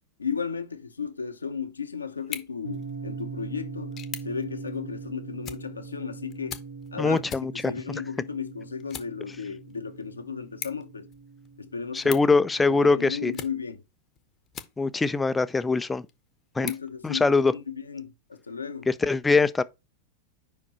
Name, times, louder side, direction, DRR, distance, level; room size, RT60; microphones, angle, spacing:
voice 1, 0.2-4.0 4.2-6.6 6.9-7.2 7.6-11.1 11.6-12.2 12.7-13.8 16.6-18.9, left 6 dB, 80° left, 0.8 m, -34 dB
sound 1, 2.2-15.2 15.7-17.7, left 9 dB, 30° left, 0.8 m, -45 dB
sound 2, 2.6-12.8, right 5 dB, 80° right, 1.7 m, -41 dB
voice 2, 7.0-8.0 11.9-13.3 14.8-16.0 16.6-16.7 17.0-17.5 18.9-19.6, left 3 dB, 10° left, 0.4 m, -23 dB
5.2 x 4.8 x 4.2 m
figure-of-eight pair, 90°, 0 cm